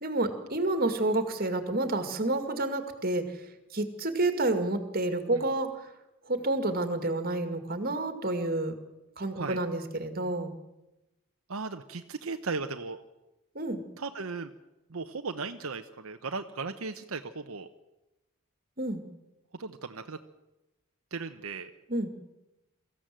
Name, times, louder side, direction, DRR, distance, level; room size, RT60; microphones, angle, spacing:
voice 1, 0.0-3.4 3.7-5.9 6.3-8.7 9.2-10.5 13.5-13.8 18.8-19.0 21.9-22.1, right 2 dB, 45° right, 8 dB, 2.1 m, -29 dB
voice 2, 11.5-13.0 14.0-14.5 14.9-17.7 19.5-20.2 21.1-21.7, right 4 dB, 80° right, 7 dB, 1.0 m, -36 dB
24.0 x 14.5 x 7.6 m, 0.98 s
head